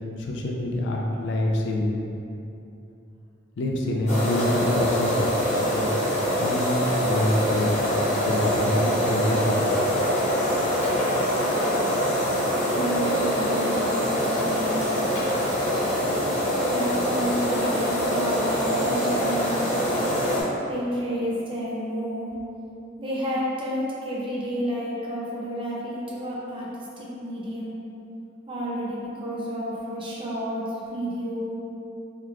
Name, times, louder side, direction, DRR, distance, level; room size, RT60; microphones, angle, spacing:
voice 1, 0.2-1.9 3.6-5.3 5.7-5.9 6.4-7.7 8.2-9.7, left 1 dB, 65° left, 0 dB, 0.4 m, -26 dB
sound 1, 4.1-20.4, equal, 35° left, 0.9 m, -24 dB
voice 2, 12.7-14.7 15.7-15.8 16.7-19.7 20.7-22.3 23.0-26.7 27.0-27.7 28.5-31.5, equal, 25° right, -6 dB, 0.6 m, -30 dB
3.6 x 3.0 x 2.3 m, 2.8 s
head